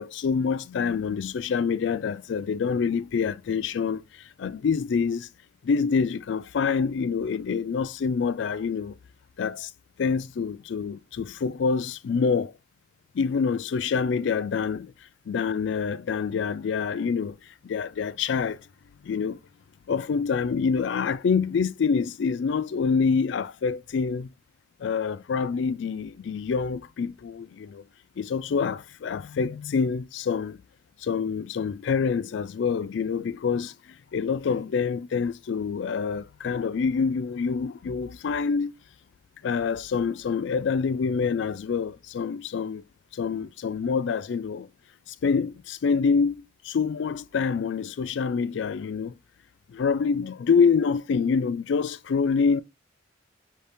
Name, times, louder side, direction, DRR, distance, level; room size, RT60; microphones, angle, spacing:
voice 1, 0.0-5.3 5.6-9.0 9.4-9.7 10.0-12.5 13.1-14.9 15.3-18.6 19.0-19.4 19.9-24.3 24.8-27.8 28.2-30.6 31.0-38.7 39.4-42.8 43.1-44.7 45.1-49.1 49.7-52.6, left 5 dB, 65° left, 0.3 m, -26 dB
5.7 x 2.7 x 3.4 m
head